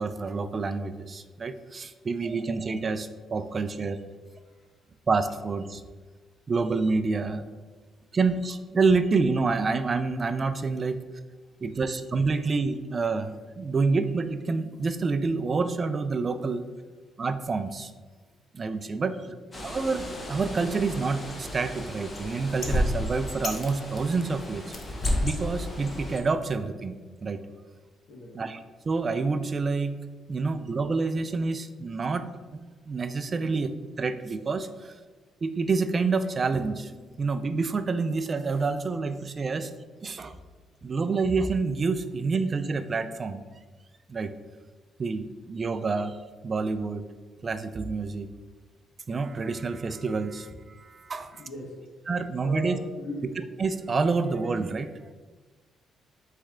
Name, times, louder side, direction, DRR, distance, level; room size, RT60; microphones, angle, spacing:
voice 1, 0.0-4.0 5.1-5.8 6.5-7.4 8.1-11.0 11.6-16.6 17.2-17.9 18.5-19.2 19.6-24.8 25.2-26.9 27.2-27.4 28.3-30.0 30.3-32.3 32.9-35.0 35.4-39.7 40.0-40.4 40.8-43.4 44.1-44.3 45.0-46.2 46.4-47.0 47.4-48.3 49.1-51.5 52.1-52.8 53.2-54.9, right 4 dB, 35° right, 10 dB, 0.3 m, -28 dB
Bird, 19.5-26.2, left 1 dB, 30° left, 0.8 m, -32 dB
voice 2, 28.1-28.4 51.3-51.8 52.4-53.3, left 1 dB, 75° left, -2 dB, 1.4 m, -38 dB
4.3 x 3.2 x 3.6 m, 1.4 s
cardioid pair, 90°, 0 cm